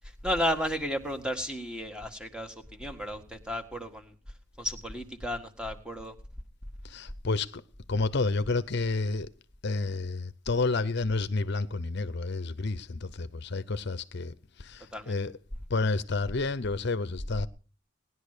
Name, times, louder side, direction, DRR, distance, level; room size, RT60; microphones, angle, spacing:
voice 1, 0.2-4.1 4.6-6.1 14.9-15.1, equal, 5° right, 1.7 m, -33 dB
voice 2, 6.8-7.6 7.9-9.3 9.6-15.3 15.7-17.5, left 3 dB, 55° left, 0.7 m, -30 dB
19.0 x 11.0 x 6.7 m
head